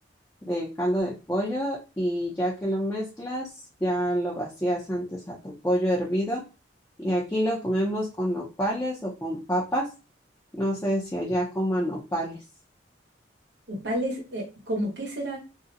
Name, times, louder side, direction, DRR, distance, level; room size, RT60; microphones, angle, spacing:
voice 1, 0.5-3.5 3.8-6.4 7.0-9.9 10.5-12.4, equal, 15° left, -5 dB, 0.5 m, -27 dB
voice 2, 13.7-15.4, equal, 70° right, 0 dB, 0.9 m, -30 dB
2.4 x 2.0 x 2.6 m, 0.31 s
head